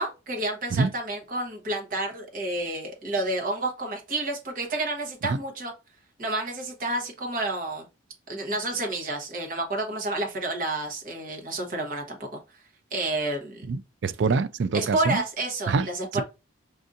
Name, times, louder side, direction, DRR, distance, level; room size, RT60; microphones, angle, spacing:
voice 1, 0.0-5.7 6.2-7.8 8.3-12.4 12.9-13.7 14.7-16.2, right 2 dB, 40° right, 1.1 m, -30 dB
voice 2, 13.7-15.2 15.7-15.9, right 4 dB, 60° right, 0.3 m, -25 dB
6.0 x 2.6 x 2.5 m
head